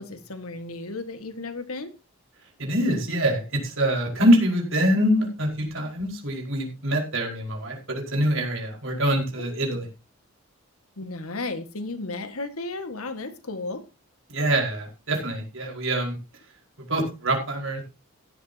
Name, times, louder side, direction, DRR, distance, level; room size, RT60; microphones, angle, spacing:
voice 1, 0.0-1.9 9.4-9.6 11.0-13.8, left 3 dB, 85° left, 9 dB, 1.7 m, -34 dB
voice 2, 2.6-9.9 14.3-16.2 16.8-17.8, right 1 dB, 65° right, 1 dB, 5.0 m, -24 dB
16.0 x 11.0 x 2.8 m, 0.29 s
head